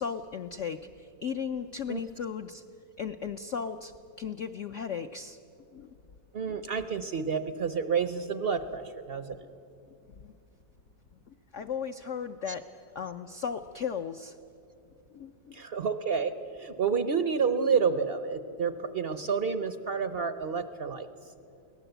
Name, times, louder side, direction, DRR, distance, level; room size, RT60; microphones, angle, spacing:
voice 1, 0.0-2.6 3.0-5.4 5.7-5.9 10.2-10.4 11.3-12.6 12.9-14.4 15.1-15.6, left 7 dB, 70° left, 7 dB, 0.7 m, -36 dB
voice 2, 6.3-9.5 12.5-12.6 15.5-21.1, right 6 dB, 60° right, 10 dB, 0.6 m, -29 dB
23.5 x 18.5 x 8.0 m, 2.6 s
omnidirectional pair, 2.0 m